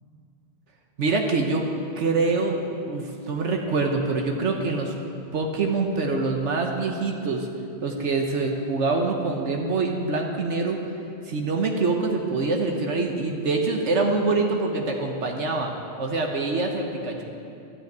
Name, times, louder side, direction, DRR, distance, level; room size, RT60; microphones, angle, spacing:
voice 1, 1.0-1.7 2.0-2.6 2.9-4.9 5.3-7.5 7.8-10.8 11.3-15.7 16.0-17.2, right 3 dB, 70° right, 2 dB, 1.3 m, -25 dB
13.0 x 6.4 x 9.2 m, 2.6 s
omnidirectional pair, 1.3 m